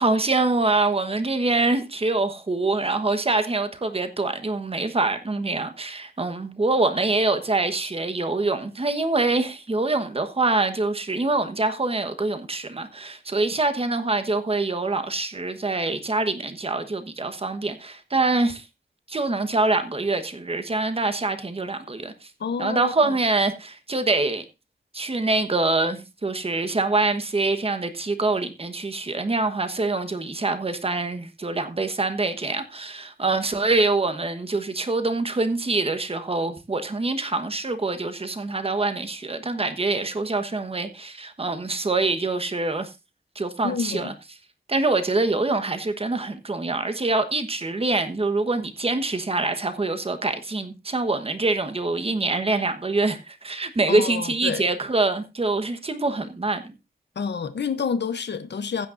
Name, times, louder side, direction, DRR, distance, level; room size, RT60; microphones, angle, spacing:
voice 1, 0.0-18.6 19.1-22.1 22.6-24.4 24.9-42.9 43.3-44.1 44.7-56.7, right 3 dB, 35° right, 1.2 m, -25 dB
voice 2, 22.4-23.1 43.6-44.1 53.9-54.6 57.2-58.9, left 6 dB, 80° left, 0.8 m, -28 dB
15.5 x 8.9 x 2.6 m
wide cardioid pair, 110°, 18 cm